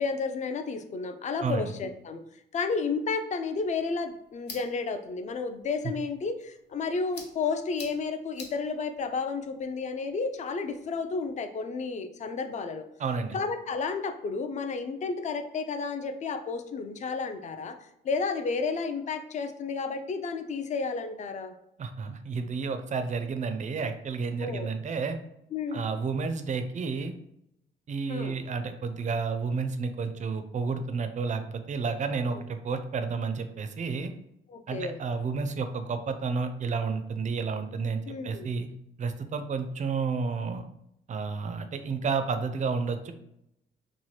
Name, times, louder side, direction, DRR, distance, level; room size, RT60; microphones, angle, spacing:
voice 1, 0.0-2.2 2.5-12.8 13.3-17.8 18.0-21.5 24.4-24.7 25.5-25.8 28.1-28.4 34.5-35.0 38.1-38.5, left 4 dB, 35° left, 8 dB, 0.4 m, -32 dB
voice 2, 1.4-1.7 13.0-13.4 21.8-25.2 25.7-27.1 27.9-34.1 34.7-38.7 39.0-40.6 41.1-43.1, right 4 dB, 40° right, 9 dB, 0.4 m, -31 dB
sound 1, 3.4-11.4, left 4 dB, 60° left, 0.8 m, -51 dB
2.9 x 2.2 x 3.1 m, 0.80 s
cardioid pair, 90°, 20 cm